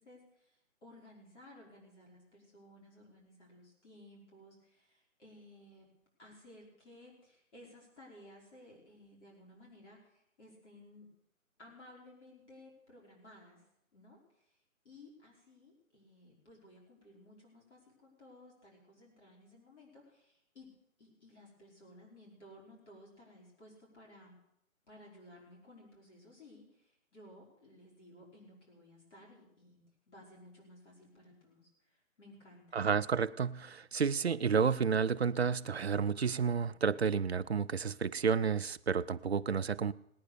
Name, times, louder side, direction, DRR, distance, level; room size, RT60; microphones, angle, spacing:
voice 1, 0.0-5.9 6.2-11.1 11.6-13.6 13.9-14.4 14.8-20.7 21.0-24.4 24.9-29.8 30.1-32.8, left 1 dB, 55° left, -3 dB, 5.2 m, -57 dB
voice 2, 32.7-39.9, right 6 dB, 50° right, 11 dB, 0.4 m, -31 dB
18.5 x 9.4 x 6.6 m, 0.78 s
hypercardioid pair, 175°, 41 cm